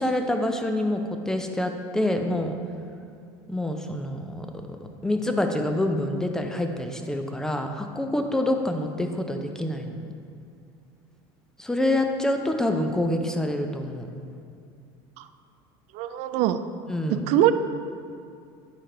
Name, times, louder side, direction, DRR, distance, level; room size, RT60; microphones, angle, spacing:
voice 1, 0.0-2.5 3.5-4.5 5.0-10.0 11.6-14.1 16.9-17.2, left 1 dB, 5° left, 4 dB, 0.4 m, -26 dB
voice 2, 15.9-16.6 17.3-17.5, right 13 dB, 60° right, 11 dB, 0.4 m, -22 dB
9.0 x 3.3 x 3.8 m, 2.4 s
supercardioid pair, 125°, 13 cm